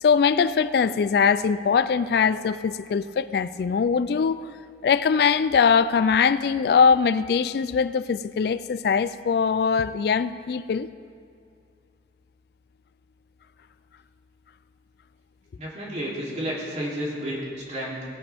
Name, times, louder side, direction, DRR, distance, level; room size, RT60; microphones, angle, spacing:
voice 1, 0.0-4.4 4.8-10.9, left 6 dB, 60° left, 0.3 m, -21 dB
voice 2, 15.6-18.2, equal, 40° right, 3.0 m, -31 dB
18.5 x 10.5 x 3.5 m
head